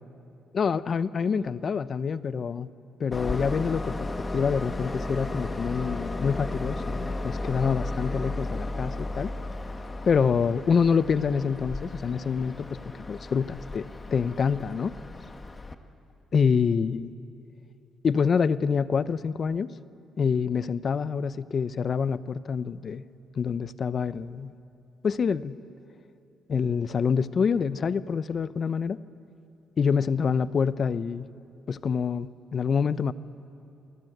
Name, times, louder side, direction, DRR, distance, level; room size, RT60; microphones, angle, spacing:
voice 1, 0.5-2.7 3.0-9.3 10.1-14.9 16.3-17.1 18.0-19.7 20.2-23.0 23.4-24.5 25.0-25.6 26.5-29.0 29.8-31.3 31.7-33.1, left 6 dB, 45° left, 15 dB, 0.7 m, -26 dB
Train, 3.1-15.7, left 2 dB, 25° left, 1.4 m, -34 dB
27.5 x 23.0 x 8.0 m, 2.8 s
cardioid pair, 90°, 0 cm